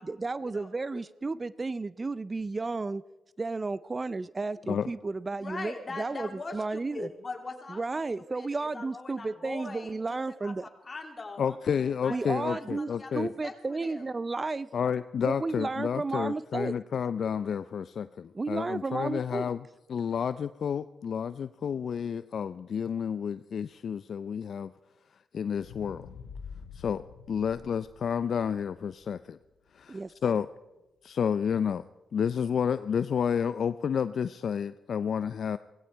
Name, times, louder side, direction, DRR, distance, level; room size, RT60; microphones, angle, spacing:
voice 1, 0.0-3.0 3.4-7.1 7.7-10.7 12.1-12.9 13.1-14.7 15.2-16.8 18.3-19.5 29.9-30.1, right 3 dB, 35° right, 18 dB, 0.5 m, -33 dB
voice 2, 0.5-1.0 5.4-8.0 8.3-11.6 12.0-14.1, left 3 dB, 40° left, 3 dB, 3.1 m, -42 dB
voice 3, 11.4-13.3 14.7-19.6 19.9-24.7 25.3-26.1 26.7-29.4 29.7-30.5 31.0-35.6, left 7 dB, 65° left, 14 dB, 0.4 m, -30 dB
sound 1, 25.5-29.8 30.3-30.4, left 6 dB, 85° left, 1.3 m, -47 dB
17.5 x 15.5 x 4.6 m, 1.0 s
supercardioid pair, 50°, 0 cm